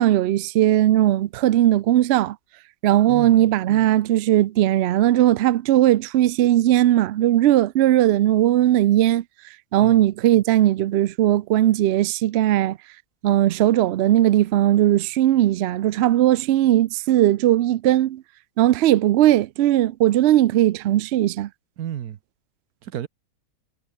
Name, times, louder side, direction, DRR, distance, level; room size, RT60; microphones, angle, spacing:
voice 1, 0.0-2.4 2.8-9.2 9.7-12.8 13.2-18.2 18.6-21.5, right 13 dB, 85° right, 0.5 m, -18 dB
voice 2, 3.1-3.5 9.8-10.0 21.8-22.2 22.8-23.1, right 10 dB, 70° right, 1.4 m, -31 dB
omnidirectional pair, 1.7 m